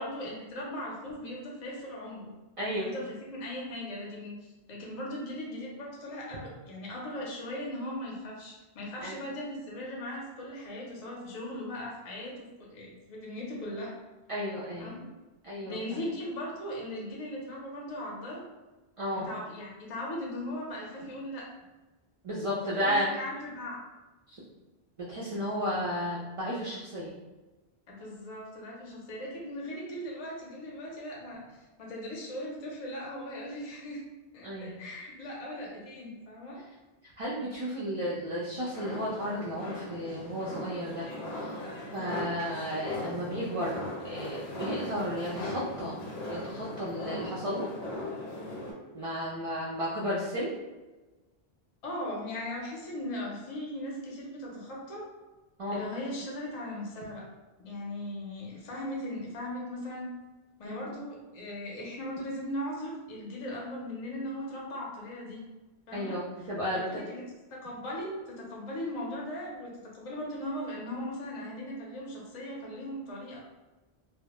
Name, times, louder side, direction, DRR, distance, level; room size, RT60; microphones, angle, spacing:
voice 1, 0.0-2.3 2.8-14.0 14.8-15.0 15.6-18.4 19.1-21.5 22.8-23.8 27.9-34.0 34.3-36.6 51.8-55.1 55.7-57.2 57.6-60.1 60.6-65.4 65.9-67.2 67.5-73.4, left 1 dB, 45° left, -3 dB, 0.5 m, -38 dB
voice 2, 2.6-2.9 9.0-9.1 14.3-14.9 15.4-15.8 19.0-19.3 22.2-23.1 24.3-24.4 25.1-27.1 34.4-34.7 37.2-41.1 41.3-41.6 41.9-43.8 44.0-46.0 46.3-47.7 48.9-50.5 55.6-55.8 60.6-60.8 65.9-66.9, equal, 55° right, -6 dB, 0.3 m, -33 dB
sound 1, 38.7-48.7, left 1 dB, 85° left, 0.9 m, -38 dB
2.1 x 2.0 x 2.9 m, 1.2 s
omnidirectional pair, 1.1 m